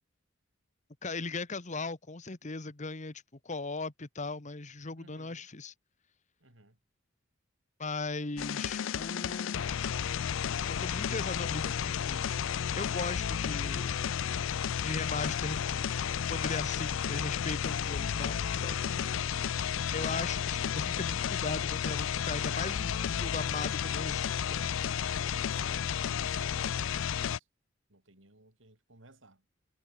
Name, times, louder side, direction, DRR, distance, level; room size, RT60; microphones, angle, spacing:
voice 1, 1.0-5.7 7.8-9.8 10.7-12.3 12.5-13.9 14.8-15.9 16.3-18.9 19.9-24.7, left 3 dB, 40° left, 1.4 m, -38 dB
voice 2, 5.0-5.5 6.4-6.8 18.8-19.7 25.5-27.4 27.9-29.4, right 2 dB, 75° right, 5.3 m, -58 dB
sound 1, 8.4-27.4, left 8 dB, 80° left, 0.4 m, -32 dB
head